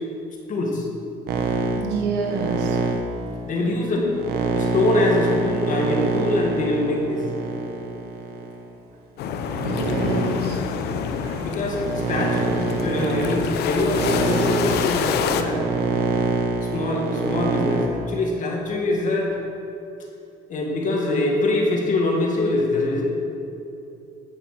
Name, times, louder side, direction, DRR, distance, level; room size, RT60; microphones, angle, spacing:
voice 1, 0.5-0.9 3.4-4.1 4.5-7.2 11.4-15.7 16.6-19.4 20.5-23.2, left 2 dB, 50° left, 0 dB, 2.1 m, -24 dB
sound 1, 1.3-8.6 9.3-17.9, right 4 dB, 70° right, 1.1 m, -26 dB
voice 2, 1.8-2.8 3.6-3.7 4.0-4.1 7.6-7.9 9.6-10.6 10.9-11.5, right 3 dB, 85° right, 2 dB, 1.6 m, -29 dB
sound 2, 9.2-15.4, left 7 dB, 75° left, 0.7 m, -27 dB
9.6 x 6.8 x 6.1 m, 2.8 s
cardioid pair, 110°, 17 cm